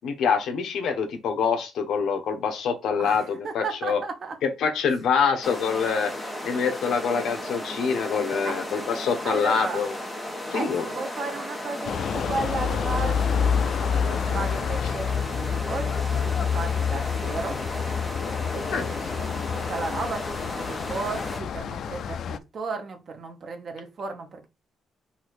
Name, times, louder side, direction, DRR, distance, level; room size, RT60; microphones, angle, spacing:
voice 1, 0.0-4.0 4.4-6.1 6.4-9.9 10.5-10.8 18.7-18.9, left 6 dB, 70° left, 0.9 m, -25 dB
voice 2, 3.0-4.4 8.4-8.5 9.2-9.8 10.5-17.6 18.5-24.5, right 4 dB, 40° right, 1.0 m, -34 dB
sound 1, 5.4-21.4, left 1 dB, 10° left, 1.1 m, -35 dB
sound 2, 11.8-22.4, left 7 dB, 50° left, 0.3 m, -28 dB
4.1 x 2.6 x 4.6 m
cardioid pair, 180°, 0 cm